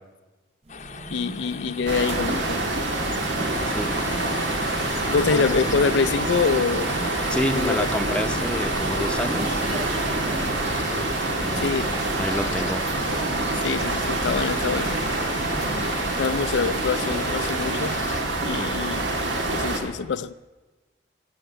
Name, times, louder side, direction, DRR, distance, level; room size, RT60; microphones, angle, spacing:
sound 1, 0.7-18.2, left 6 dB, 40° left, 0.7 m, -38 dB
sound 2, 0.7-16.3, right 2 dB, 35° right, 0.5 m, -38 dB
voice 1, 1.1-2.6 5.1-7.0 7.5-7.9 11.5-11.9 13.5-15.0 16.2-18.0 18.4-19.0 19.5-20.3, left 5 dB, 75° left, 14 dB, 0.4 m, -25 dB
sound 3, 1.9-19.8, right 2 dB, 80° right, 2.0 m, -26 dB
voice 2, 7.3-9.6 11.4-11.8 12.2-12.9, equal, 5° left, 6 dB, 0.8 m, -28 dB
16.5 x 6.5 x 9.0 m, 1.2 s
head